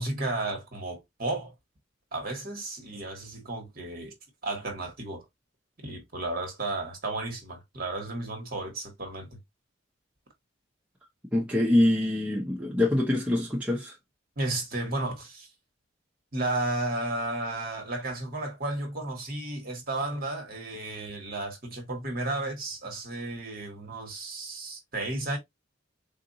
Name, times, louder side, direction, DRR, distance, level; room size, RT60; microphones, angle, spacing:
voice 1, 0.0-1.5 2.1-4.1 4.4-5.2 5.8-9.4 14.4-15.5 16.3-25.4, right 2 dB, 45° right, 1.2 m, -33 dB
voice 2, 11.3-13.9, left 1 dB, 5° right, 0.6 m, -24 dB
3.8 x 2.5 x 2.6 m
head